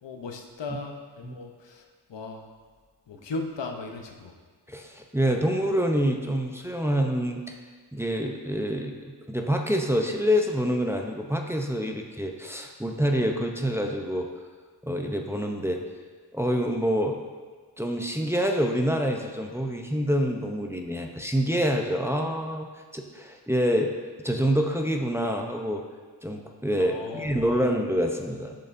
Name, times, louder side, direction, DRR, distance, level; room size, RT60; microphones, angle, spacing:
voice 1, 0.0-1.8 2.1-2.4 3.1-4.3 26.8-27.6, left 3 dB, 80° left, 3 dB, 0.8 m, -37 dB
voice 2, 4.7-7.6 7.9-14.3 14.8-15.8 16.3-17.2 17.8-22.7 22.9-23.9 24.2-25.8 26.2-28.6, equal, 5° right, 2 dB, 0.6 m, -26 dB
10.5 x 6.6 x 2.6 m, 1.5 s
wide cardioid pair, 75°, 42 cm